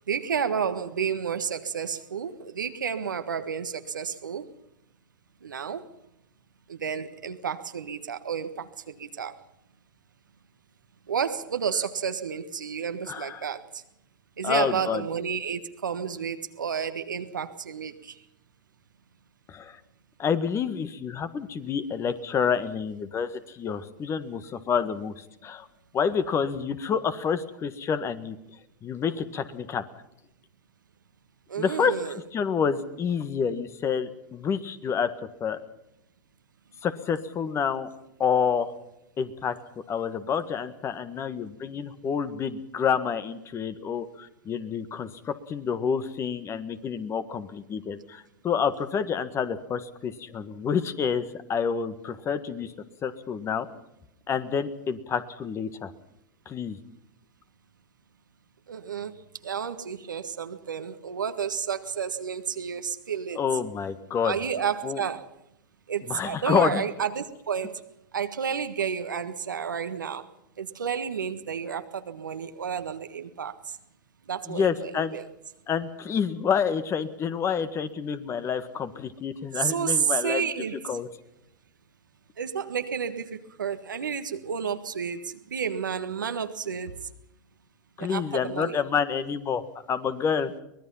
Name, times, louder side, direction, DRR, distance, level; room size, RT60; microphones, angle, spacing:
voice 1, 0.1-4.5 5.4-5.8 6.7-9.4 11.1-13.8 14.4-18.2 31.5-32.2 58.7-59.2 59.4-63.4 64.2-65.3 65.9-67.8 68.1-70.3 70.6-73.8 74.3-75.2 79.5-80.7 82.4-87.1 88.0-88.8, right 7 dB, 85° right, 9 dB, 1.6 m, -31 dB
voice 2, 13.1-13.5 14.4-15.0 19.5-19.8 20.2-25.7 25.9-28.4 28.8-29.8 31.6-35.1 35.4-35.6 36.8-37.9 38.2-38.7 39.2-39.6 39.9-52.7 53.0-53.7 54.3-55.9 56.5-56.8 63.3-64.4 64.8-65.0 66.1-66.9 74.5-75.2 75.7-80.5 80.8-81.1 88.0-90.5, left 6 dB, 25° left, 12 dB, 1.7 m, -28 dB
23.5 x 19.5 x 5.7 m, 0.86 s
hypercardioid pair, 105°, 10 cm